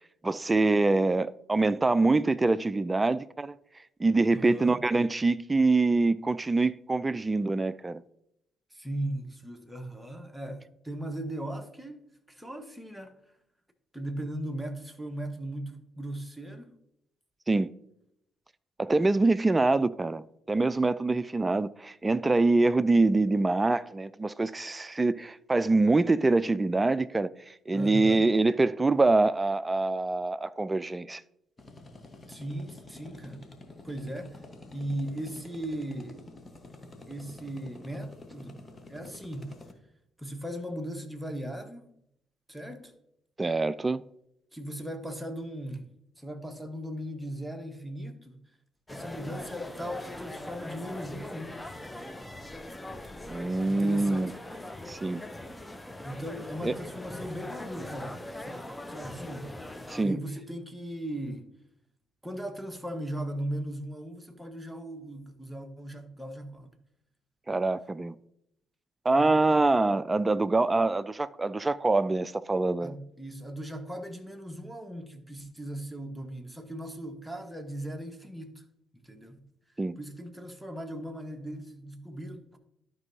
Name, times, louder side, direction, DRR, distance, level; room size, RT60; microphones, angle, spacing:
voice 1, 0.2-3.5 4.0-8.0 17.5-17.7 18.8-31.2 43.4-44.0 53.3-54.3 54.9-55.2 56.6-56.7 59.9-60.2 67.5-68.1 69.0-72.9 79.8-80.0, right 3 dB, 25° right, 0.4 m, -25 dB
voice 2, 4.3-4.8 8.7-12.0 12.3-13.1 13.9-16.8 27.7-28.3 32.3-33.4 33.8-34.4 34.7-36.2 37.1-38.6 38.9-39.5 40.2-41.9 42.5-42.9 44.5-45.9 46.2-48.4 48.9-51.6 53.7-54.7 56.0-59.5 60.0-61.5 62.2-66.7 69.1-69.6 72.8-78.6 78.9-79.4 80.0-82.6, right 1 dB, 5° right, 1.2 m, -38 dB
sound 1, 31.6-39.7, left 2 dB, 30° left, 1.3 m, -49 dB
sound 2, 48.9-60.0, left 1 dB, 15° left, 0.7 m, -41 dB
12.0 x 5.4 x 2.8 m
hypercardioid pair, 45°, 0 cm